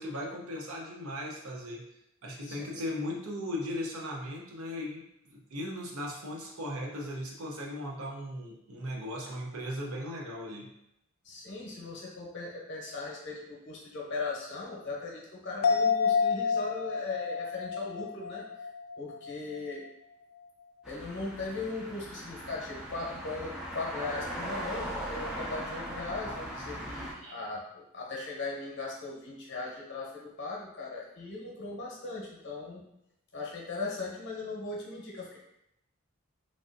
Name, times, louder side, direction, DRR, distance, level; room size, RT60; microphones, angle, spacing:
voice 1, 0.0-1.8 2.2-10.7 27.1-27.5, left 1 dB, 80° right, -1 dB, 0.7 m, -37 dB
voice 2, 2.4-2.8 11.2-18.4 19.0-19.8 20.9-32.8 33.3-35.4, left 3 dB, 55° left, -2 dB, 0.8 m, -38 dB
sound 1, 15.6-19.3 19.7-19.8, left 6 dB, 80° left, 0.4 m, -29 dB
sound 2, 20.8-27.1, equal, 5° right, 0.4 m, -39 dB
3.3 x 2.5 x 2.5 m, 0.81 s
head